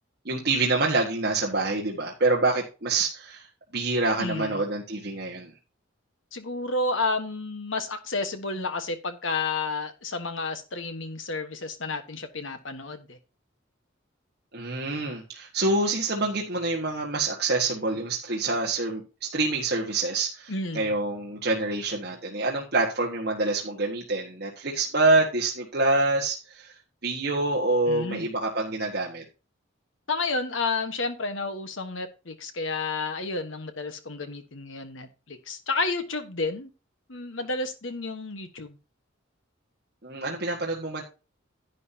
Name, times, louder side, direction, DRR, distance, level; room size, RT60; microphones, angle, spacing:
voice 1, 0.2-3.5 3.7-5.5 14.5-19.0 19.3-26.7 27.0-29.2 40.0-41.0, right 2 dB, 50° right, 1.5 m, -26 dB
voice 2, 4.2-4.6 6.3-13.2 20.5-20.9 27.9-28.3 30.1-36.7 37.1-38.8, left 3 dB, 70° left, 1.3 m, -31 dB
11.0 x 9.1 x 2.8 m
head